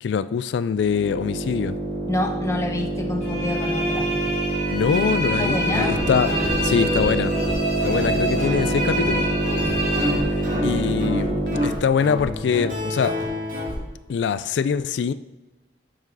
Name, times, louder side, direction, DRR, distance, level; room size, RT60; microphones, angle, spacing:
voice 1, 0.0-1.8 4.7-7.3 7.8-9.3 10.4-13.2 14.1-15.1, left 6 dB, 90° left, 14 dB, 0.3 m, -24 dB
sound 1, 0.7-11.9, right 2 dB, 65° right, 3.0 m, -26 dB
voice 2, 2.1-4.2 5.4-6.0, left 1 dB, 15° left, 3 dB, 0.8 m, -28 dB
sound 2, 3.2-10.9, right 1 dB, 40° left, 2.8 m, -28 dB
Guitar, 5.5-13.7, left 1 dB, 50° right, 2.2 m, -29 dB
7.2 x 6.1 x 5.3 m, 1.1 s
head